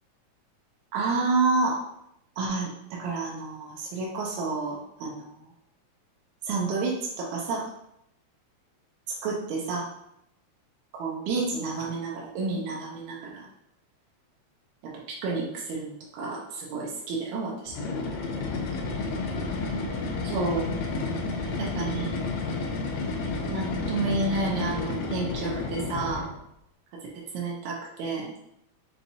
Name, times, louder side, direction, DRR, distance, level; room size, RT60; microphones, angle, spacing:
voice 1, 0.9-1.8 2.4-5.5 6.4-7.7 9.2-9.9 10.9-13.5 15.1-17.9 20.2-20.7 21.6-22.1 23.5-26.3 27.3-28.3, right 3 dB, 80° right, -3 dB, 2.1 m, -30 dB
sound 1, 17.7-26.4, left 3 dB, 75° left, 1.9 m, -31 dB
5.6 x 2.9 x 2.7 m, 0.79 s
omnidirectional pair, 3.4 m